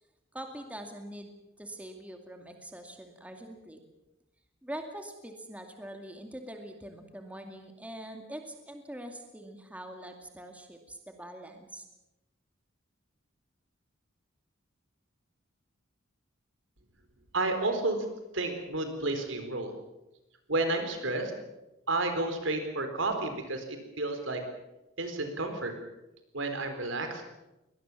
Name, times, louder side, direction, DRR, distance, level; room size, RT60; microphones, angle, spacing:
voice 1, 0.3-1.3 1.6-3.8 4.6-11.8, right 1 dB, 5° right, 4 dB, 2.3 m, -43 dB
voice 2, 17.3-18.0 18.3-19.7 20.5-21.3 21.9-24.4 25.0-25.7 26.3-27.2, right 2 dB, 75° right, 7 dB, 4.2 m, -31 dB
23.0 x 19.5 x 7.4 m, 0.97 s
head